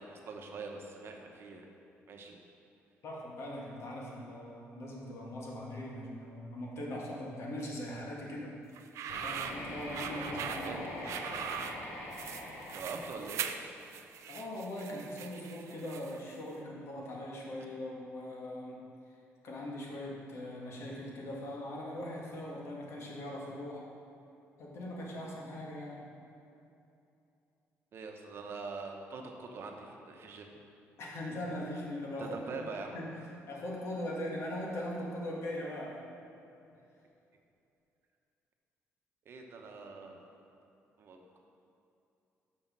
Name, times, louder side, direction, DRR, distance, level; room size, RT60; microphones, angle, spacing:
voice 1, 0.0-1.7 2.1-2.4 10.6-10.8 12.7-13.4 27.9-30.5 32.2-33.0 39.2-40.4 41.0-41.4, right 4 dB, 55° right, 2 dB, 0.9 m, -43 dB
voice 2, 3.0-8.5 9.2-10.7 14.3-18.8 19.4-23.8 24.6-26.0 31.0-36.0, left 1 dB, 65° left, -2 dB, 1.6 m, -40 dB
sound 1, 8.7-16.3, right 8 dB, 75° right, 0.4 m, -41 dB
sound 2, 9.1-14.0, left 1 dB, 80° left, 1.7 m, -43 dB
6.2 x 5.7 x 6.0 m, 2.7 s
cardioid pair, 110°, 5 cm